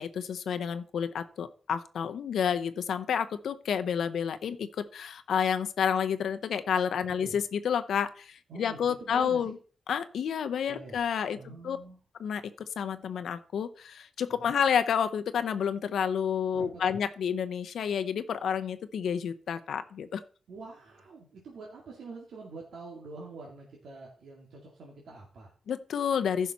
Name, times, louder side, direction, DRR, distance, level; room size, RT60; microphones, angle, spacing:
voice 1, 0.0-9.5 9.9-11.4 11.6-11.8 12.2-20.2 25.7-26.5, left 7 dB, 90° left, 10 dB, 0.7 m, -30 dB
voice 2, 8.5-9.5 10.7-11.0 11.3-12.0 14.3-14.5 16.5-17.0 20.5-25.5, right 3 dB, 85° right, -3 dB, 2.3 m, -45 dB
14.5 x 5.8 x 4.1 m, 0.39 s
wide cardioid pair, 140°, 0 cm